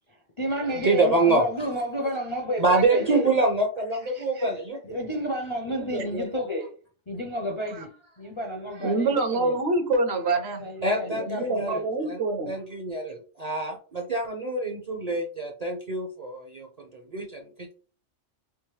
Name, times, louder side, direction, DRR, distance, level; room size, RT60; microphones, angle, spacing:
voice 1, 0.1-3.3 4.1-6.7 7.1-9.5 10.6-11.8, equal, 40° left, 0.4 m, -31 dB
voice 2, 0.7-1.4 2.6-4.8 5.7-6.4 10.8-12.2 12.5-17.7, right 3 dB, 45° right, 0.5 m, -26 dB
voice 3, 8.8-10.6 11.2-12.5, right 2 dB, 60° right, 0.9 m, -25 dB
3.5 x 2.9 x 3.1 m
omnidirectional pair, 1.3 m